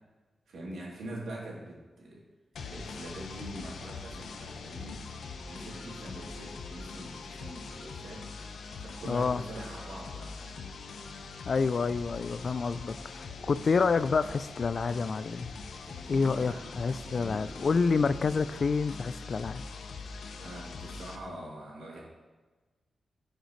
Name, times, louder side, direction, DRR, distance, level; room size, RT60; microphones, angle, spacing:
voice 1, 0.5-2.2 2.6-5.0 5.5-8.2 8.8-10.7 15.8-17.5 20.4-22.0, right 1 dB, 90° right, -4 dB, 3.1 m, -44 dB
sound 1, 2.6-21.2, left 4 dB, 85° left, 0.8 m, -43 dB
voice 2, 9.1-9.4 11.5-15.5 16.1-19.6, left 4 dB, 40° left, 15 dB, 0.3 m, -28 dB
16.0 x 6.6 x 3.2 m, 1.3 s
wide cardioid pair, 175°, 0 cm